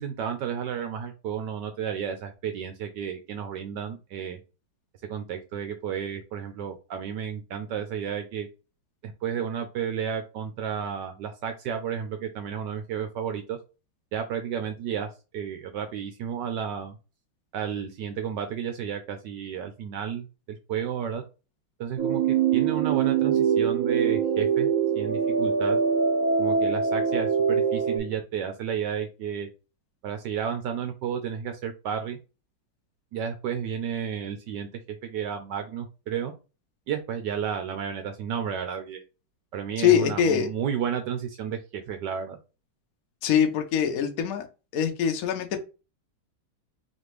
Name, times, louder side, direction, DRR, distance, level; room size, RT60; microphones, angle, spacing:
voice 1, 0.0-4.4 5.1-8.5 9.0-13.6 14.1-17.0 17.5-20.3 20.7-21.2 21.8-22.2 22.5-24.7 24.9-25.8 26.4-29.5 30.0-32.2 33.1-34.7 35.0-36.3 36.9-39.0 39.5-42.4, right 8 dB, 75° right, 6 dB, 1.0 m, -32 dB
sound 1, 22.0-28.0, right 6 dB, 25° right, 1.0 m, -23 dB
voice 2, 39.8-40.5 43.2-44.5 44.7-45.6, left 8 dB, 65° left, 5 dB, 0.9 m, -23 dB
4.2 x 2.9 x 3.1 m, 0.31 s
omnidirectional pair, 2.3 m